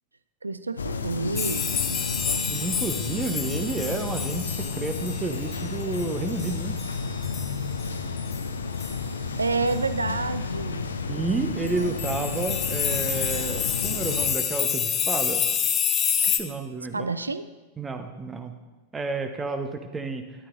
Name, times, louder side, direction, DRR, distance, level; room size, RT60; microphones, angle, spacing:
voice 1, 0.4-2.5 9.4-10.9 11.5-12.0 16.9-17.5, right 3 dB, 80° right, 14 dB, 0.4 m, -30 dB
sound 1, 0.8-14.3, left 5 dB, 75° left, 0.6 m, -32 dB
sound 2, 1.4-7.5 7.8-7.9 8.2-8.4 8.8-9.0 9.7-9.8 11.7-16.4, left 8 dB, 25° left, 0.7 m, -28 dB
voice 2, 2.5-6.8 11.1-15.5 16.2-17.1 17.8-18.5 18.9-20.3, right 3 dB, 15° right, 6 dB, 0.8 m, -31 dB
12.5 x 10.5 x 2.6 m, 1.2 s
figure-of-eight pair, 90°, 0 cm